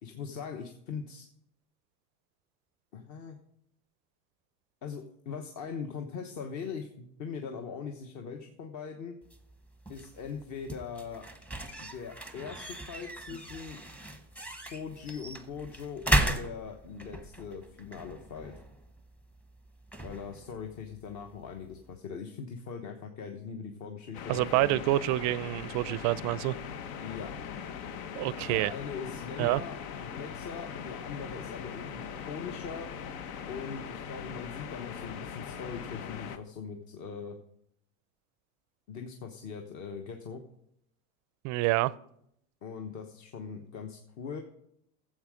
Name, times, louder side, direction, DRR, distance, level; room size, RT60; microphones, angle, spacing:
voice 1, 0.0-1.2 2.9-3.4 4.8-9.2 9.9-11.2 11.8-13.9 14.7-18.5 20.0-24.8 27.0-27.3 28.5-32.9 33.5-37.4 38.9-40.4 42.6-44.4, left 6 dB, 40° left, 1.2 m, -41 dB
sound 1, 9.2-22.0, right 1 dB, 5° left, 0.8 m, -37 dB
sound 2, 24.1-36.4, left 7 dB, 70° left, 1.1 m, -41 dB
voice 2, 24.3-26.5 28.1-28.7 29.4-29.6 41.4-41.9, right 17 dB, 40° right, 0.4 m, -27 dB
12.5 x 7.6 x 4.9 m
supercardioid pair, 120°, 43 cm